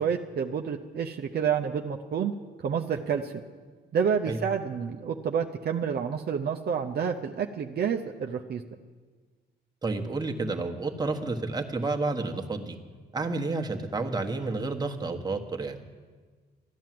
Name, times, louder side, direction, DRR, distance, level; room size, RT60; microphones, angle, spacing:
voice 1, 0.0-2.3 2.6-3.3 3.9-8.6, right 7 dB, 55° right, 3 dB, 0.7 m, -29 dB
voice 2, 9.8-12.8 13.1-15.8, right 3 dB, 20° right, 3 dB, 1.3 m, -30 dB
13.5 x 10.5 x 7.7 m, 1.5 s
cardioid pair, 90°, 20 cm